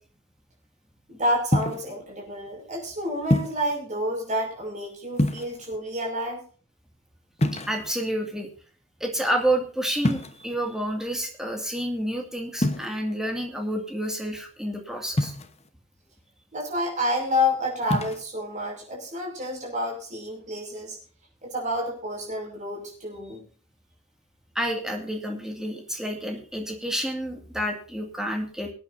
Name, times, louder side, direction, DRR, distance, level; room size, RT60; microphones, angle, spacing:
voice 1, 1.1-6.4 16.5-21.0 21.4-23.4, left 1 dB, 35° right, 0 dB, 5.9 m, -29 dB
sound 1, 1.5-1.9 3.3-3.7 5.1-5.8 7.4-8.1 10.0-10.5 12.6-12.9 15.2-15.7 17.8-18.2, left 1 dB, 30° left, 1.1 m, -26 dB
voice 2, 7.5-8.5 9.0-15.3 24.5-28.7, right 1 dB, ahead, 2 dB, 2.2 m, -29 dB
24.5 x 9.0 x 2.7 m, 0.42 s
head